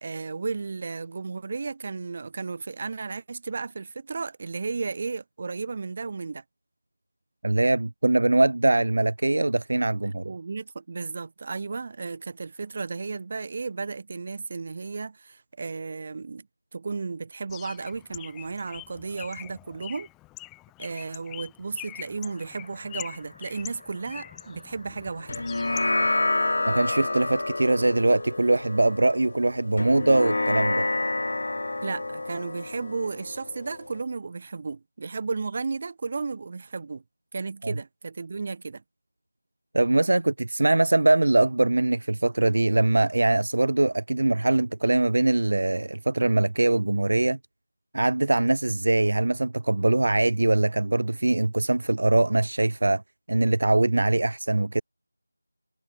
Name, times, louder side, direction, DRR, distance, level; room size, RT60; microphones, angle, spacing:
voice 1, 0.0-6.4 10.0-16.5 16.7-20.1 20.8-25.5 31.8-37.0 37.3-38.8, right 4 dB, 25° right, 0.9 m, -34 dB
voice 2, 7.4-10.3 26.7-30.8 37.6-37.7 39.7-47.4 47.9-53.0 53.3-54.8, right 2 dB, 55° right, 0.4 m, -22 dB
Bird, 17.5-26.3, left 20 dB, 5° left, 0.8 m, -44 dB
sound 1, 22.2-27.3 28.1-30.5, left 1 dB, 75° left, 7.7 m, -54 dB
sound 2, 25.3-34.0, left 2 dB, 50° left, 0.4 m, -28 dB
figure-of-eight pair, 175°, 0 cm